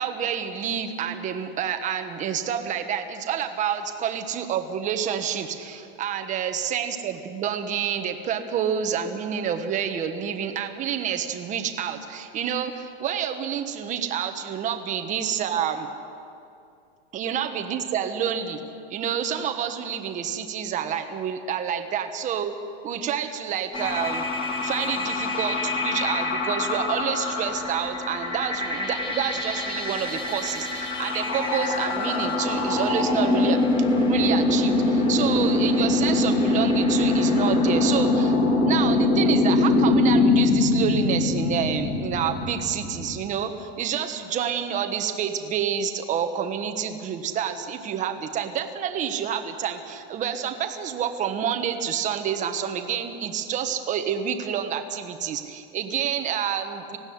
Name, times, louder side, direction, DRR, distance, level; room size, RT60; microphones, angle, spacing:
voice 1, 0.0-15.9 17.1-18.6 18.9-22.5 22.8-24.2 24.6-25.5 25.8-33.6 33.9-57.0, right 8 dB, 25° right, 7 dB, 1.4 m, -28 dB
sound 1, 23.7-43.2, left 2 dB, 15° left, 3.3 m, -23 dB
19.5 x 15.5 x 9.6 m, 2.5 s
supercardioid pair, 150°, 31 cm